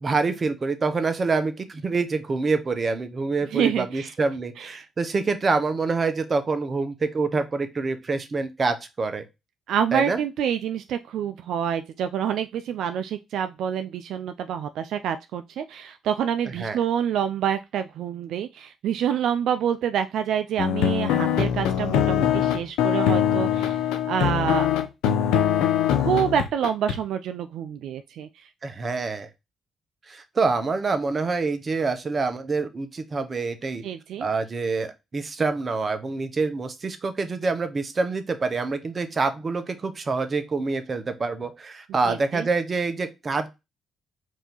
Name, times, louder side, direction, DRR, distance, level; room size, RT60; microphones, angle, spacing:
voice 1, 0.0-9.2 9.9-10.2 16.6-16.8 28.6-29.3 30.1-33.8 34.2-43.5, right 4 dB, 40° right, 9 dB, 0.9 m, -26 dB
voice 2, 3.5-4.1 4.6-4.7 9.7-24.7 26.0-28.5 33.8-34.3 42.1-42.5, right 8 dB, 75° right, 9 dB, 0.3 m, -27 dB
sound 1, 20.6-27.0, left 9 dB, 90° left, 0.6 m, -22 dB
4.7 x 2.8 x 3.8 m, 0.23 s
supercardioid pair, 70°, 0 cm